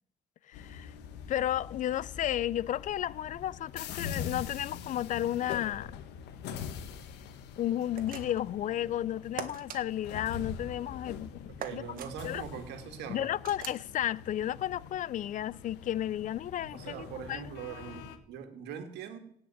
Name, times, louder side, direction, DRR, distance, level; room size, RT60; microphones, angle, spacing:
voice 1, 0.4-0.9 1.3-6.0 7.6-11.8 12.2-12.4 13.1-17.4, left 12 dB, 50° left, 0.5 m, -33 dB
sound 1, 0.5-18.2, left 7 dB, 85° left, 1.5 m, -44 dB
sound 2, 7.9-8.5 9.4-9.8 11.6-12.1 13.4-13.8, right 8 dB, 60° right, 1.6 m, -41 dB
voice 2, 11.6-13.3 16.7-19.2, right 7 dB, 85° right, 2.2 m, -42 dB
17.0 x 5.9 x 9.0 m
cardioid pair, 110°, 17 cm